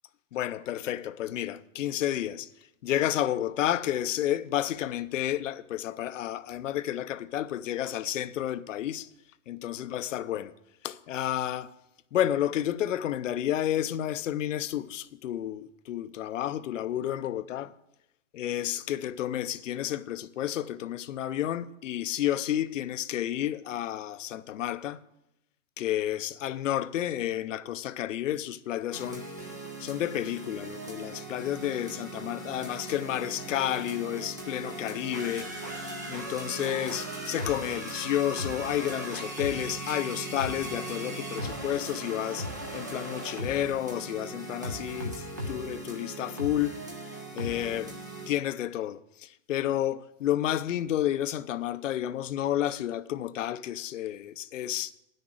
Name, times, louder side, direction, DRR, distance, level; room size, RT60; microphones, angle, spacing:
voice 1, 0.3-2.5 2.8-9.1 9.5-10.5 10.8-11.7 12.1-17.7 18.3-25.0 25.8-29.2 29.8-35.5 36.1-46.8 47.3-48.0 48.3-54.9, left 12 dB, 70° left, 0.7 m, -31 dB
sound 1, 28.9-48.3, right 1 dB, 15° right, 0.3 m, -38 dB
9.8 x 6.6 x 7.6 m
hypercardioid pair, 170°, 40 cm